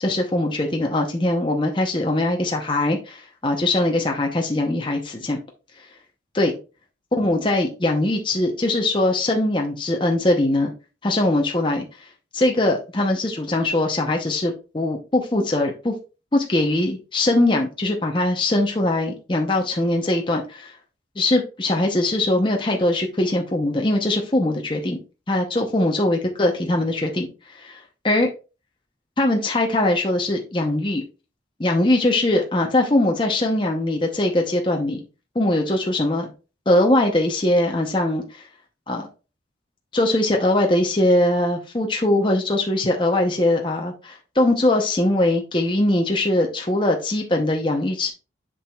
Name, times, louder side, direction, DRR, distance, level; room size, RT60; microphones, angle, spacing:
voice 1, 0.0-5.4 6.3-6.6 7.1-10.7 11.0-11.9 12.3-15.9 16.3-20.7 21.2-25.0 25.3-27.3 27.5-28.3 29.2-31.0 31.6-35.0 35.3-36.3 36.7-38.5 38.9-39.1 39.9-48.1, left 1 dB, 25° left, 1 dB, 0.8 m, -21 dB
7.2 x 6.2 x 2.3 m, 0.32 s
head